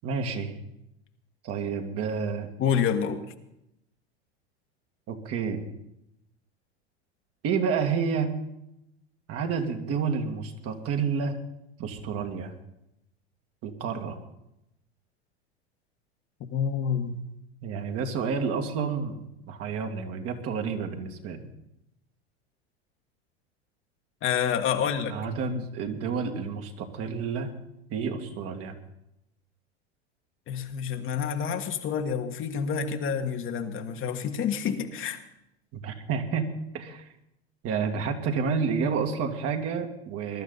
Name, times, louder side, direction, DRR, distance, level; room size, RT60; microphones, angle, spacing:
voice 1, 0.0-0.5 1.4-2.5 5.1-5.6 7.4-8.3 9.3-11.3 11.8-12.5 13.6-14.2 17.6-21.4 25.1-27.5 27.9-28.7 35.7-36.5 36.7-37.1 37.6-40.4, right 5 dB, 45° right, 4 dB, 2.2 m, -29 dB
voice 2, 2.6-3.2 16.5-17.2 24.2-25.2 30.5-35.2, left 7 dB, 40° left, 6 dB, 1.6 m, -28 dB
21.5 x 12.0 x 4.1 m, 0.82 s
hypercardioid pair, 90°, 33 cm